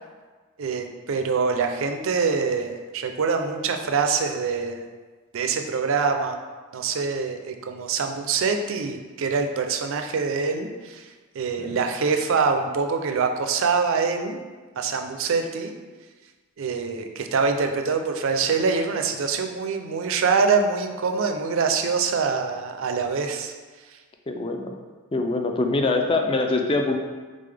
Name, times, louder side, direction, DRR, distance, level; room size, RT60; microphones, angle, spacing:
voice 1, 0.6-4.8 5.3-6.4 6.7-11.1 11.3-14.4 14.8-15.7 16.6-23.5, right 5 dB, 60° right, 6 dB, 0.4 m, -24 dB
voice 2, 24.3-24.7 25.1-27.0, left 3 dB, 25° left, 4 dB, 0.3 m, -24 dB
3.7 x 3.7 x 3.3 m, 1.4 s
head